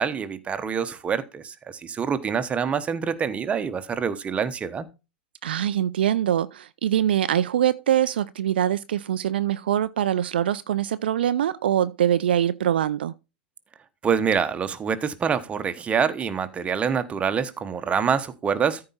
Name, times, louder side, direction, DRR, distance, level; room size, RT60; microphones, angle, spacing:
voice 1, 0.0-4.9 14.0-18.8, right 6 dB, 20° right, 1.1 m, -26 dB
voice 2, 5.4-13.1, right 10 dB, 65° right, 0.4 m, -23 dB
14.0 x 4.8 x 4.2 m
figure-of-eight pair, 90°, 6 cm